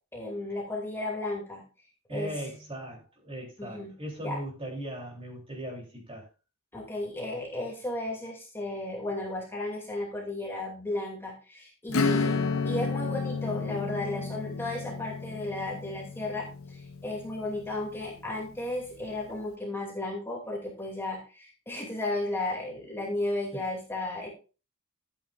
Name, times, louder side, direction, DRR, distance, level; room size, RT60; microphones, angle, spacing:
voice 1, 0.1-1.6 2.1-2.3 3.6-3.9 4.2-4.4 6.7-24.3, left 2 dB, 10° left, 2.6 m, -34 dB
voice 2, 2.1-6.3 23.5-23.6, right 1 dB, 25° right, 3.4 m, -38 dB
Acoustic guitar / Strum, 11.9-18.1, left 4 dB, 70° left, 0.9 m, -31 dB
12.5 x 8.9 x 2.5 m
head